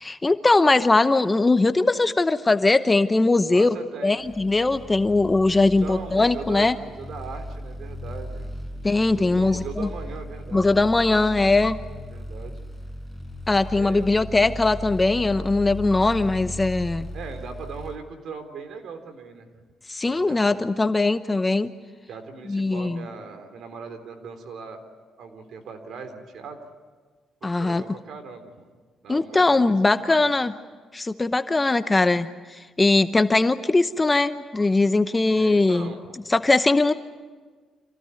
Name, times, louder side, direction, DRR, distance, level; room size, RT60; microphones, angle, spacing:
voice 1, 0.0-3.8 4.0-6.8 8.8-9.9 10.5-11.8 13.5-17.1 19.9-21.7 22.5-23.0 27.4-27.8 29.1-30.5 30.9-35.9 36.3-36.9, left 3 dB, 20° left, 11 dB, 0.8 m, -20 dB
voice 2, 3.5-4.2 5.4-8.5 9.1-10.7 12.1-12.6 13.7-14.1 17.1-19.5 20.0-20.6 22.1-24.8 25.2-26.6 27.4-28.5 29.0-30.3 35.3-36.2, right 5 dB, 70° right, 7 dB, 3.5 m, -39 dB
sound 1, 4.2-17.9, left 1 dB, 10° right, 6.3 m, -37 dB
27.0 x 17.0 x 9.6 m, 1.5 s
cardioid pair, 90°, 0 cm